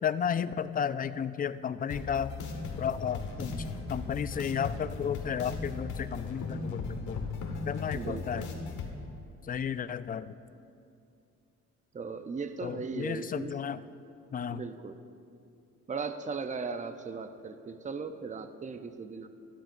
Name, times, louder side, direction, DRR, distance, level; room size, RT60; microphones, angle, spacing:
voice 1, 0.0-2.3 2.8-7.3 7.7-8.5 9.4-10.4 12.6-13.8 14.3-14.6, left 8 dB, 30° left, 14 dB, 0.4 m, -33 dB
sound 1, 1.9-8.9, left 4 dB, 75° left, 1.4 m, -37 dB
voice 2, 7.9-8.5 11.9-13.6 14.5-15.0 15.9-19.3, right 5 dB, 25° right, 9 dB, 0.6 m, -37 dB
16.5 x 12.0 x 2.6 m, 2.5 s
cardioid pair, 90°, 30 cm